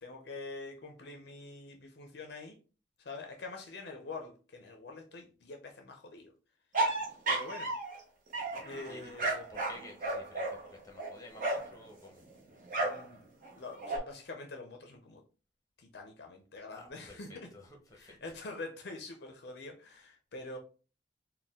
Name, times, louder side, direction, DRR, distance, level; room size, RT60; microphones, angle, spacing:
voice 1, 0.0-2.5 3.0-6.3 7.3-7.7 8.6-9.5 12.8-13.2 13.5-15.2 15.8-17.5 17.9-20.6, left 3 dB, 55° left, 0.5 m, -45 dB
sound 1, 6.7-8.0 8.3-11.7 12.7-13.1 13.4-14.0, right 2 dB, 45° right, 1.0 m, -33 dB
voice 2, 8.9-12.2 16.7-18.1, left 1 dB, 15° left, 0.8 m, -52 dB
4.2 x 2.2 x 3.5 m
head